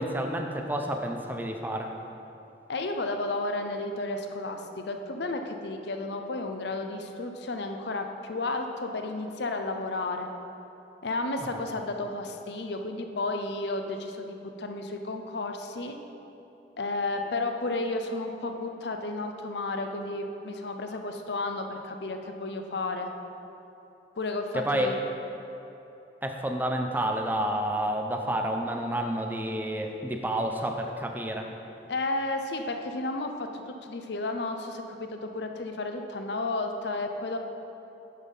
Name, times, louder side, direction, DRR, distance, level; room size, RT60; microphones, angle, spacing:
voice 1, 0.0-1.9 24.5-24.9 26.2-31.5, right 1 dB, 10° right, 2 dB, 0.5 m, -29 dB
voice 2, 2.7-10.3 11.0-16.0 16.8-23.1 24.2-25.0 31.9-37.4, left 2 dB, 70° left, 5 dB, 0.7 m, -32 dB
9.9 x 5.7 x 5.4 m, 3.0 s
head